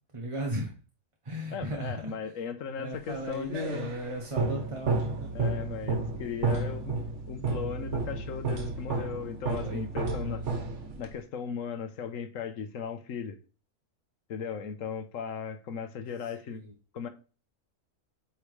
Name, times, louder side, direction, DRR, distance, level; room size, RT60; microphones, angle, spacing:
voice 1, 0.1-0.7 1.2-2.1 2.8-5.6 9.6-10.5 16.5-16.7, right 1 dB, 30° right, 0.7 m, -37 dB
voice 2, 1.5-3.9 5.3-10.4 11.0-13.4 14.3-16.6 16.9-17.1, left 6 dB, 70° left, 1.2 m, -37 dB
sound 1, 3.1-11.2, right 3 dB, 60° right, 1.3 m, -32 dB
8.3 x 3.6 x 3.2 m
omnidirectional pair, 1.4 m